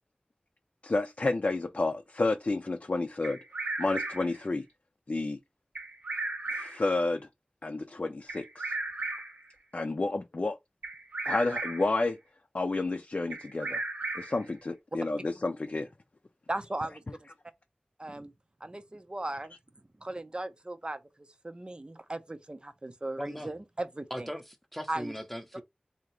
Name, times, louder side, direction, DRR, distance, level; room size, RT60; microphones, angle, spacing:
voice 1, 0.8-3.4 3.8-4.7 5.1-5.4 6.5-7.3 7.6-8.7 9.7-10.6 11.3-12.2 12.5-13.8 14.1-15.9, left 2 dB, 50° left, 0.5 m, -30 dB
Bird vocalization bird call bird song, 3.2-4.4 5.8-6.9 8.3-9.5 10.8-12.0 13.3-14.5, right 2 dB, 90° right, 1.1 m, -35 dB
voice 2, 16.5-17.3 18.0-18.3 18.6-19.5 20.0-21.0 21.4-24.3 24.9-25.1, right 2 dB, 35° right, 0.7 m, -37 dB
voice 3, 23.2-23.5 24.1-25.6, equal, 5° left, 0.8 m, -39 dB
3.6 x 2.8 x 3.2 m
wide cardioid pair, 60°, 3 cm